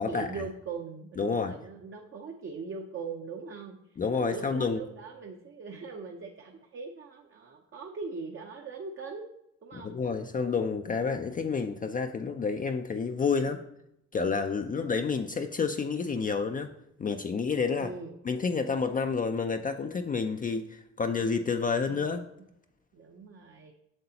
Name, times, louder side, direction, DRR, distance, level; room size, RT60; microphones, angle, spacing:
voice 1, 0.0-9.3 9.6-9.9 17.8-18.2 21.8-22.2 22.9-23.7, right 4 dB, 45° right, 2 dB, 0.8 m, -41 dB
voice 2, 1.2-1.5 4.0-4.8 9.8-13.6 14.1-16.7 17.0-17.9 18.3-22.2, left 5 dB, 30° left, 6 dB, 0.4 m, -29 dB
7.8 x 6.6 x 2.9 m, 0.81 s
cardioid pair, 90°, 30 cm